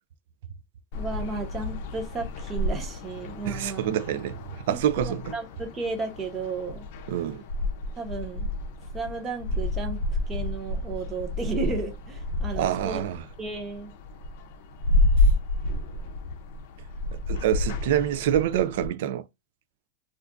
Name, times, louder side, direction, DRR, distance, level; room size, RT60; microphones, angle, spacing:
sound 1, 0.9-18.9, left 1 dB, 60° left, 0.5 m, -30 dB
voice 1, 0.9-3.9 4.7-6.9 7.9-8.5 8.9-13.0 13.4-13.9, right 3 dB, 20° right, 0.8 m, -34 dB
voice 2, 3.4-4.4 4.7-5.4 7.1-7.4 12.5-13.2 17.3-19.2, right 11 dB, 70° right, 0.4 m, -26 dB
2.4 x 2.3 x 3.6 m
supercardioid pair, 145°, 0 cm